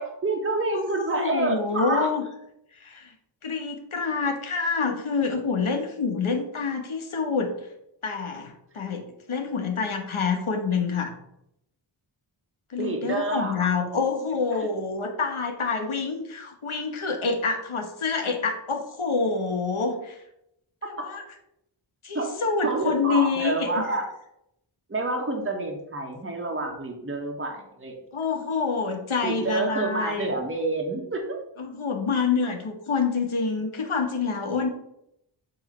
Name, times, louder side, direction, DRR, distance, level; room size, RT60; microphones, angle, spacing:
voice 1, 0.0-2.1 12.8-14.0 14.6-14.7 20.8-21.0 22.1-24.1 24.9-28.0 29.2-31.4, right 2 dB, 25° right, 1 dB, 1.3 m, -28 dB
voice 2, 0.7-2.3 2.7-3.1 3.4-7.5 8.0-11.2 12.7-20.2 20.8-21.2 22.0-23.8 28.1-30.3 31.6-34.7, left 4 dB, 85° left, 4 dB, 1.3 m, -27 dB
7.5 x 3.2 x 5.4 m, 0.78 s
wide cardioid pair, 60°, 48 cm